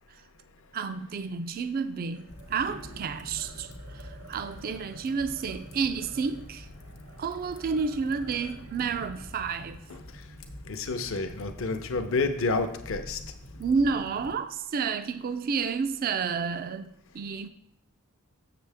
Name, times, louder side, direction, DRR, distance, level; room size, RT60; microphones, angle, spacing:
voice 1, 0.7-6.7 7.2-9.8 13.6-16.9 17.1-17.5, right 5 dB, 45° right, 0.3 m, -30 dB
sound 1, 2.0-12.5, right 2 dB, 75° right, 1.1 m, -52 dB
Fire, 2.3-14.4, left 1 dB, 85° left, 1.0 m, -46 dB
voice 2, 10.7-13.2, left 3 dB, 65° left, 0.6 m, -29 dB
7.3 x 6.7 x 3.4 m
head